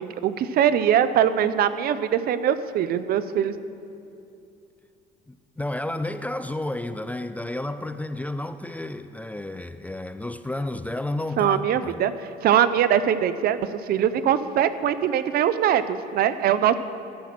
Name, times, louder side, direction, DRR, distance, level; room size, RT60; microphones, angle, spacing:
voice 1, 0.0-3.5 11.4-12.1 12.4-16.8, right 9 dB, 65° right, 0.6 m, -22 dB
voice 2, 5.3-12.0, left 1 dB, 10° left, 0.3 m, -31 dB
13.5 x 6.0 x 7.5 m
cardioid pair, 110°, 17 cm